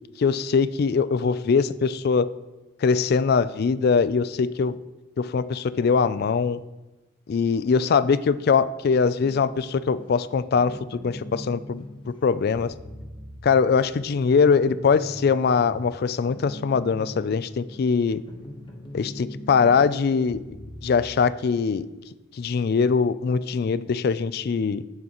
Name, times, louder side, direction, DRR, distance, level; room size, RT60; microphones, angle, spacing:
voice 1, 0.2-2.3 2.8-4.7 5.2-6.6 7.3-11.8 12.2-12.7 13.4-18.2 18.9-20.4 20.8-21.9 22.4-24.8, left 5 dB, 50° left, 16 dB, 0.3 m, -22 dB
sound 1, 9.2-21.2, equal, 20° left, 1.0 m, -41 dB
15.5 x 6.4 x 3.0 m, 1.1 s
head